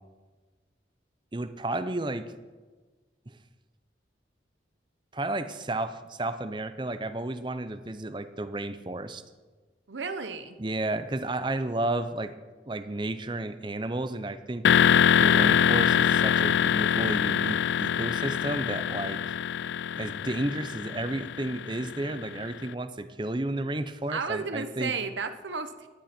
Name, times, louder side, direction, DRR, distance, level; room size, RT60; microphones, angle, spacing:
voice 1, 1.3-2.3 5.1-9.2 10.6-12.3 12.7-14.7 15.2-19.2 20.0-24.9, right 2 dB, 25° right, 11 dB, 0.7 m, -32 dB
voice 2, 9.9-10.6 24.1-25.9, right 4 dB, 90° right, 10 dB, 1.0 m, -33 dB
sound 1, 14.6-22.4, left 8 dB, 85° left, 0.4 m, -24 dB
16.5 x 12.0 x 4.4 m, 1.3 s
head